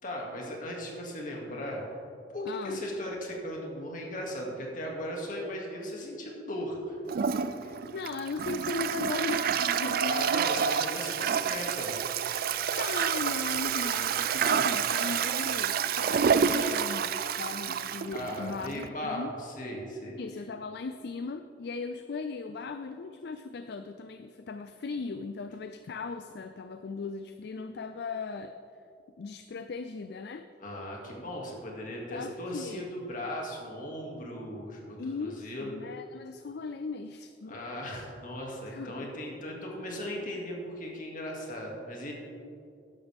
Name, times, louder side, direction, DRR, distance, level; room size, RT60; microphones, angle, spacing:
voice 1, 0.0-1.8 2.3-7.0 10.0-12.0 14.3-14.9 18.1-20.2 30.6-35.7 37.4-42.1, left 1 dB, 50° left, -2 dB, 2.4 m, -37 dB
voice 2, 2.4-2.8 7.6-10.2 12.7-19.3 20.2-28.6 29.2-30.5 32.1-32.9 35.0-37.8 38.7-39.4, left 4 dB, 65° left, 9 dB, 0.4 m, -38 dB
Toilet flush, 7.1-18.9, right 7 dB, 55° right, 0.4 m, -28 dB
14.0 x 11.0 x 3.6 m, 2.6 s
head